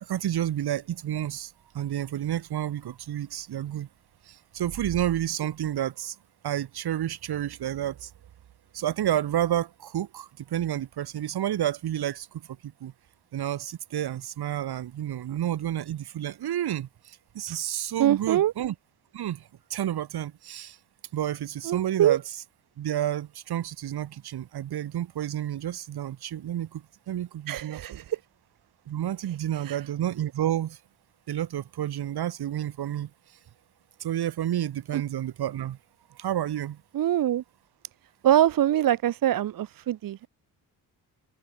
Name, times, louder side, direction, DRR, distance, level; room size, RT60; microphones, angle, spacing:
voice 1, 0.0-3.9 4.2-6.2 6.4-8.1 8.7-12.9 13.3-18.7 19.1-20.8 21.1-22.2 22.8-28.0 28.9-30.8 31.3-33.1 34.0-35.8 36.1-36.8, right 11 dB, 80° right, 1.9 m, -30 dB
voice 2, 18.0-18.5 21.6-22.2 27.5-28.2 29.6-29.8 34.9-35.0 36.9-37.4 38.2-40.3, right 12 dB, 60° right, 0.7 m, -24 dB
wide cardioid pair, 175°, 38 cm